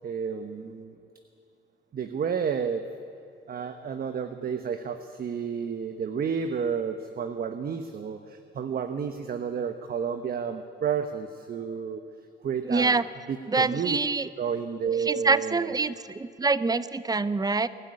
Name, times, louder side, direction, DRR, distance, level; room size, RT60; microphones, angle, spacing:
voice 1, 0.0-0.9 1.9-2.9 3.5-12.0 12.4-15.7, right 7 dB, 50° right, 9 dB, 1.0 m, -31 dB
voice 2, 12.6-13.0 13.5-14.3 15.1-17.7, right 3 dB, 20° right, 16 dB, 0.8 m, -25 dB
23.0 x 12.5 x 9.8 m, 2.7 s
cardioid pair, 90°, 20 cm